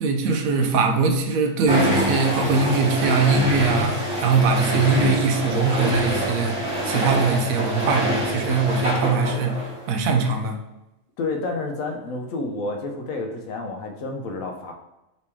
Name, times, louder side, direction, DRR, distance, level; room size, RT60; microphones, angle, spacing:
voice 1, 0.0-6.6 6.9-9.6 9.9-10.6, right 4 dB, 80° right, 5 dB, 1.0 m, -21 dB
sound 1, 1.7-9.9, right 1 dB, 60° right, 1.3 m, -25 dB
voice 2, 11.2-14.7, left 3 dB, 75° left, 3 dB, 1.1 m, -29 dB
4.1 x 3.0 x 3.5 m, 0.93 s
omnidirectional pair, 1.4 m